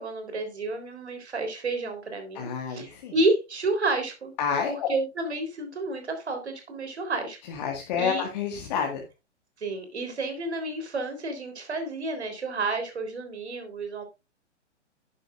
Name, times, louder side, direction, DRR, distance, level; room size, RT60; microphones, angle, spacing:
voice 1, 0.0-4.3 4.7-7.4 8.0-8.2 9.6-14.0, right 2 dB, 65° right, 7 dB, 3.8 m, -30 dB
voice 2, 2.3-3.1 4.4-4.9 7.5-9.0, left 7 dB, 35° left, 2 dB, 1.8 m, -29 dB
11.5 x 10.5 x 2.5 m, 0.25 s
figure-of-eight pair, 120°, 36 cm